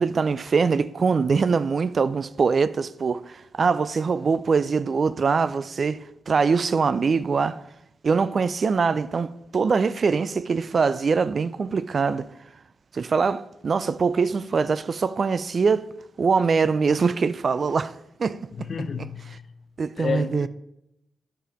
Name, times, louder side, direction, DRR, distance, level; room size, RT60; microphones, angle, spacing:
voice 1, 0.0-7.6 8.0-12.3 12.9-15.9 16.2-18.7 19.8-20.5, right 5 dB, 55° right, 0.4 m, -23 dB
voice 2, 18.5-19.5 20.0-20.5, left 5 dB, 55° left, 0.7 m, -31 dB
9.1 x 6.8 x 5.1 m
supercardioid pair, 45°, 0 cm